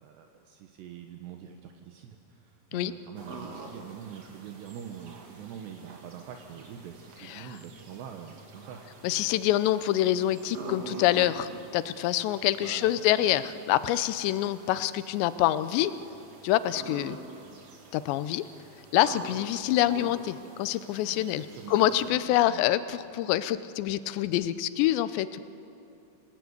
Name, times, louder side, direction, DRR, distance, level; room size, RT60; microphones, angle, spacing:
voice 1, 0.0-8.8 12.6-13.2 21.0-21.9 22.1-22.7, right 8 dB, 75° right, 4 dB, 3.2 m, -45 dB
sound 1, 3.2-22.1, right 3 dB, 45° right, 2.7 m, -46 dB
voice 2, 9.0-13.4 13.7-15.9 16.4-17.2 17.9-18.4 18.9-25.4, left 13 dB, 80° left, 14 dB, 2.9 m, -26 dB
26.0 x 18.5 x 9.5 m, 2.7 s
omnidirectional pair, 5.2 m